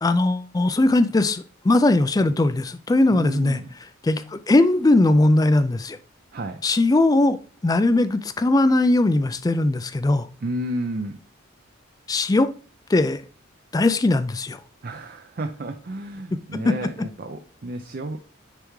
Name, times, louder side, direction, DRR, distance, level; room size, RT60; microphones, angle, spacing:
voice 1, 0.0-3.6 4.0-6.0 6.6-7.4 7.6-10.3 12.1-12.5 12.9-13.2 13.7-14.6 16.5-16.7, left 2 dB, 15° left, 0.3 m, -19 dB
voice 2, 3.1-3.7 6.3-6.6 10.4-11.2 14.8-18.2, right 1 dB, 45° right, 0.5 m, -31 dB
9.9 x 3.5 x 3.1 m
head